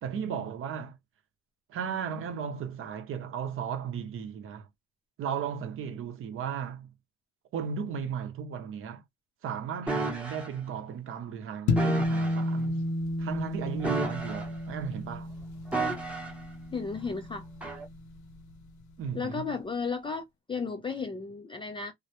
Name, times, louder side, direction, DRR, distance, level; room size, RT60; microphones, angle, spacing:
voice 1, 0.0-1.0 1.7-4.7 5.2-6.9 7.5-9.0 9.4-12.8 13.2-15.3 19.0-19.4, right 7 dB, 45° right, 0.6 m, -35 dB
sound 1, 9.9-10.5 11.8-12.4 13.8-14.7 15.7-16.5 17.6-17.8, right 2 dB, 5° right, 0.8 m, -32 dB
sound 2, 11.7-18.3, left 1 dB, 70° left, 0.6 m, -32 dB
voice 2, 16.7-17.4 19.1-21.9, left 5 dB, 20° left, 0.3 m, -34 dB
2.2 x 2.0 x 2.8 m
cardioid pair, 110°, 30 cm